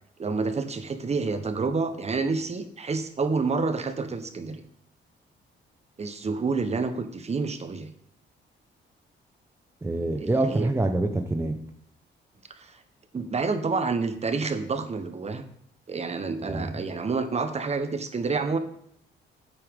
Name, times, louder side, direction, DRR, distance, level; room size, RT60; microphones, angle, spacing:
voice 1, 0.2-4.6 6.0-7.9 10.2-10.7 12.5-12.8 13.1-15.5 15.9-18.6, right 4 dB, 35° right, 8 dB, 1.2 m, -28 dB
voice 2, 9.8-11.6 16.4-16.7, right 2 dB, 15° right, 5 dB, 0.9 m, -26 dB
10.0 x 8.4 x 3.7 m, 0.68 s
cardioid pair, 90°, 20 cm